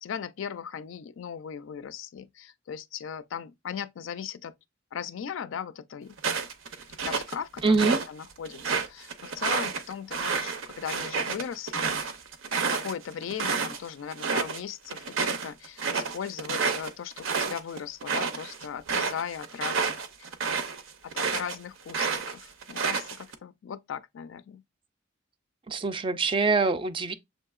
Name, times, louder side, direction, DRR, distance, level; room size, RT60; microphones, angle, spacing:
voice 1, 0.0-4.5 4.9-6.2 7.0-12.1 12.4-20.3 21.0-24.6, left 7 dB, 70° left, 0.4 m, -38 dB
sound 1, 6.2-8.1 8.5-13.8 14.1-14.6 14.9-21.6 21.9-23.3, right 5 dB, 75° right, 0.6 m, -29 dB
voice 2, 7.6-8.0 25.7-27.1, right 4 dB, 25° right, 0.3 m, -24 dB
7.0 x 2.7 x 2.4 m
head